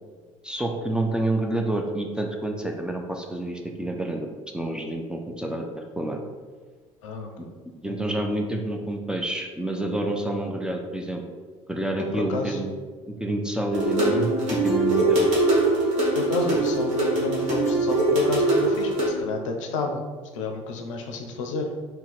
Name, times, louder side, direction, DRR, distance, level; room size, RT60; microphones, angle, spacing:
voice 1, 0.4-4.3 4.5-6.2 7.4-7.5 7.8-11.2 11.7-12.7 13.1-15.3, right 1 dB, 5° right, 2 dB, 0.4 m, -28 dB
voice 2, 7.0-7.5 12.1-12.7 16.2-20.0 20.3-21.7, left 3 dB, 70° left, 3 dB, 0.5 m, -30 dB
sound 1, 13.7-19.1, right 2 dB, 45° right, 1.3 m, -22 dB
3.6 x 2.1 x 4.2 m, 1.4 s
figure-of-eight pair, 60°, 17 cm